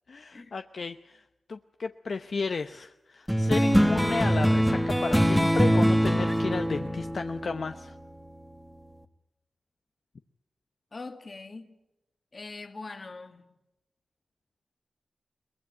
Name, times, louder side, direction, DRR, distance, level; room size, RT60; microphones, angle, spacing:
voice 1, 0.1-1.2 1.5-7.9, left 4 dB, 65° left, 0.8 m, -33 dB
sound 1, 3.3-8.2, equal, ahead, 1.5 m, -23 dB
voice 2, 10.9-11.8 12.3-13.6, left 3 dB, 45° left, 2.1 m, -42 dB
22.5 x 20.0 x 9.2 m
wide cardioid pair, 80°, 0 cm